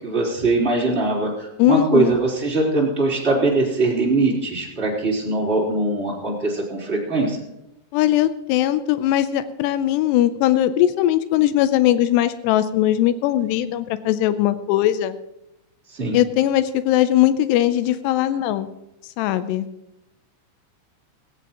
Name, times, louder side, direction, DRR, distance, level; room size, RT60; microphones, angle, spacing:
voice 1, 0.0-7.4 15.9-16.2, right 2 dB, 15° right, -4 dB, 3.5 m, -21 dB
voice 2, 1.6-2.2 7.9-15.2 16.1-18.7 19.2-19.7, left 13 dB, 85° left, 12 dB, 2.4 m, -19 dB
17.5 x 17.0 x 3.0 m, 0.86 s
omnidirectional pair, 5.7 m